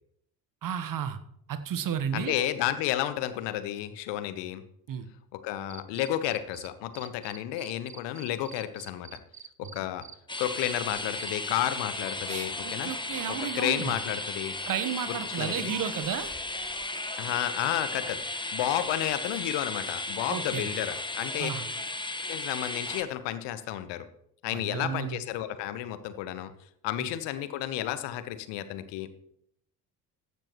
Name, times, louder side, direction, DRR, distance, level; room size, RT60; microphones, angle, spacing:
voice 1, 0.6-1.2 1.5-2.5 4.9-5.1 12.3-14.0 14.7-16.3 20.3-20.7 21.4-21.6 24.5-25.2 27.0-27.1, right 8 dB, 45° right, 11 dB, 1.3 m, -33 dB
voice 2, 2.1-4.6 5.3-9.2 9.6-10.0 10.4-12.9 13.5-14.5 15.1-15.7 17.2-18.2 18.5-21.5 22.3-24.1 24.4-26.5 26.8-29.1, left 13 dB, 60° left, 12 dB, 1.2 m, -31 dB
Cricket, 5.7-6.7 6.9-11.3, right 7 dB, 25° right, 0.9 m, -46 dB
sound 1, 10.3-23.0, left 2 dB, 10° left, 1.4 m, -35 dB
15.0 x 12.0 x 3.1 m, 0.71 s
figure-of-eight pair, 50°, 47 cm